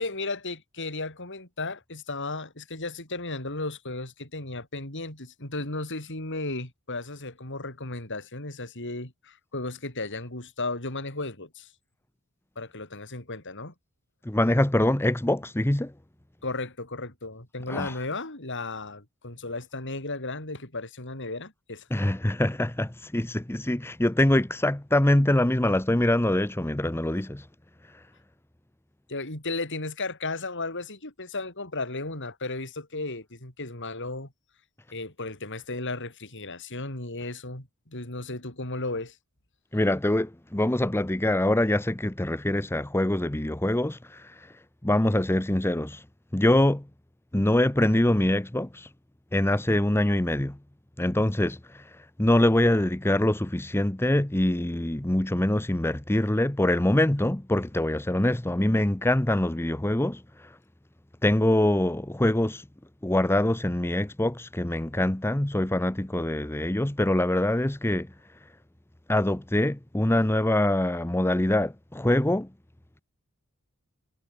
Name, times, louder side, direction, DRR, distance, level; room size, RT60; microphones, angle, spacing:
voice 1, 0.0-11.7 12.5-13.7 16.4-21.9 29.1-34.3 34.9-39.2, left 2 dB, 55° left, 6.8 m, -35 dB
voice 2, 14.2-15.9 17.7-17.9 21.9-27.5 27.9-28.0 39.7-44.5 44.8-46.0 46.3-46.9 47.3-48.9 49.3-50.6 51.0-60.6 61.2-62.6 63.0-68.1 69.1-72.5, left 1 dB, 10° left, 0.8 m, -24 dB
head